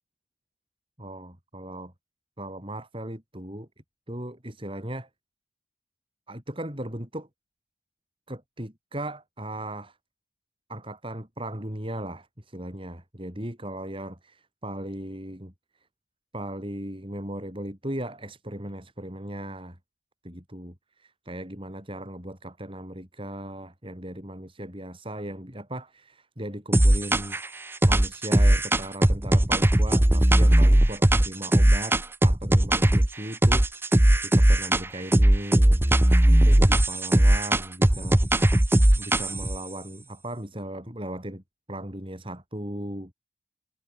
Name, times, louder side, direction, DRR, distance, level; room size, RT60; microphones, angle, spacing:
voice 1, 1.0-1.9 2.4-3.7 4.1-5.1 6.3-7.3 8.3-10.0 10.7-15.5 16.3-19.8 20.2-27.4 27.8-35.8 36.3-38.5 39.0-41.4 41.7-43.1, right 1 dB, 30° right, 6.2 m, -37 dB
sound 1, 26.7-27.5 27.8-33.1 33.4-34.9 35.1-39.6, right 1 dB, 15° right, 0.7 m, -19 dB
head